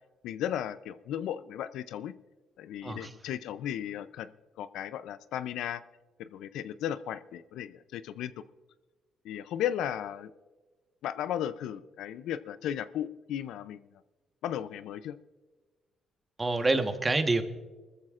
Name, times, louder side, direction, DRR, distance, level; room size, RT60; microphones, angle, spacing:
voice 1, 0.2-2.1 2.6-5.8 6.2-8.3 9.2-10.3 11.0-13.8 14.4-15.2, left 10 dB, 85° left, 14 dB, 0.4 m, -35 dB
voice 2, 16.4-17.4, right 2 dB, 25° right, 7 dB, 1.2 m, -27 dB
21.5 x 14.0 x 2.5 m, 1.3 s
cardioid pair, 90°, 0 cm